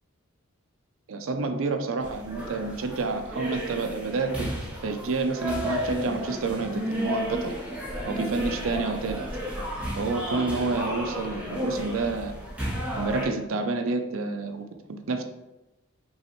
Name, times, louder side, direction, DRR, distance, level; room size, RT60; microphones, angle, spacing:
voice 1, 1.1-4.5 4.8-7.6 8.1-9.2 10.0-12.3 13.0-15.2, right 3 dB, 65° right, 6 dB, 0.5 m, -29 dB
sound 1, 2.0-13.3, equal, 5° right, 0.9 m, -33 dB
5.5 x 3.2 x 3.0 m, 0.97 s
head